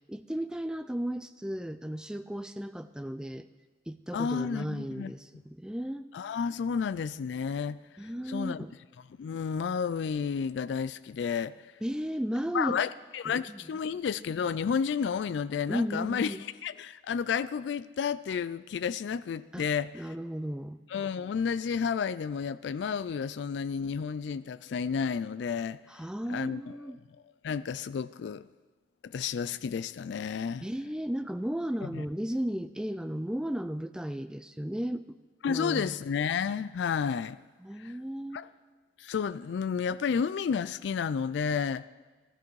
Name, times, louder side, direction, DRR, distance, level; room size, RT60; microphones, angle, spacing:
voice 1, 0.1-3.5 3.9-6.1 8.0-8.7 11.8-12.8 13.3-13.6 15.7-16.4 19.5-19.7 19.9-20.8 25.9-27.0 30.6-35.2 35.5-36.0 37.6-38.4, equal, 5° right, 0.3 m, -35 dB
voice 2, 4.1-5.1 6.1-8.7 9.2-11.7 12.5-20.1 20.9-25.8 26.3-26.8 27.4-28.5 29.0-30.7 31.8-32.0 35.4-37.4 37.8-37.9 38.3-38.5 39.0-41.9, left 6 dB, 80° left, 0.3 m, -31 dB
13.0 x 12.5 x 4.7 m
head